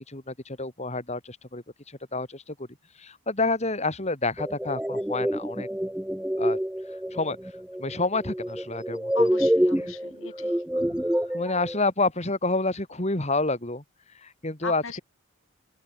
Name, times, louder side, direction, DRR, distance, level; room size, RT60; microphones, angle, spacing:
voice 1, 0.1-2.5 3.0-5.7 6.4-6.6 7.1-7.4 7.8-9.3 10.8-13.8 14.1-14.8, left 3 dB, 30° left, 2.9 m, -29 dB
sound 1, 4.4-11.8, equal, 5° right, 0.5 m, -27 dB
voice 2, 9.1-10.5 14.6-15.0, left 4 dB, 70° left, 2.7 m, -37 dB
open air
head